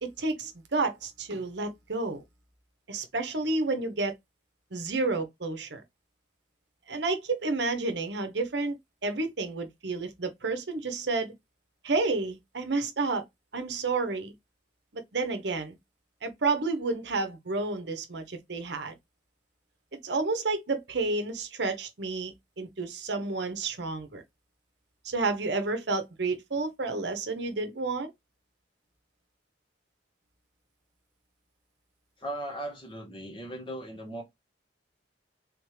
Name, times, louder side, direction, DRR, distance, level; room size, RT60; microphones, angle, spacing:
voice 1, 0.0-2.2 2.9-4.1 4.7-5.8 6.9-8.8 9.0-11.3 11.8-13.2 13.5-14.3 14.9-15.8 16.2-19.0 20.0-24.2 25.0-28.1, right 3 dB, 65° right, 0.9 m, -30 dB
voice 2, 32.2-34.2, right 1 dB, 25° left, 1.3 m, -37 dB
3.5 x 3.5 x 3.1 m
head